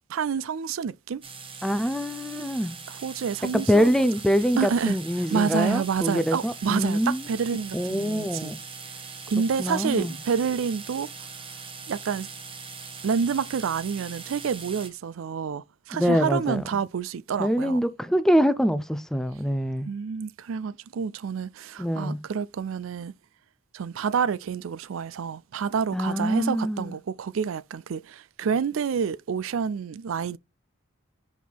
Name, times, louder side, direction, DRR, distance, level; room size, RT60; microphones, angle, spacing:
voice 1, 0.1-1.2 2.9-3.9 4.6-5.0 5.3-8.6 8.8-11.1 11.9-12.3 13.0-17.8 19.9-23.1 23.7-30.4, right 6 dB, 75° right, 0.4 m, -28 dB
sound 1, 1.2-14.9, right 5 dB, 25° right, 1.1 m, -41 dB
voice 2, 1.6-2.7 3.5-7.2 7.7-8.6 9.6-10.1 15.9-16.6 17.4-19.9 21.8-22.2 25.9-26.9, equal, ahead, 0.5 m, -24 dB
5.4 x 4.7 x 4.0 m
head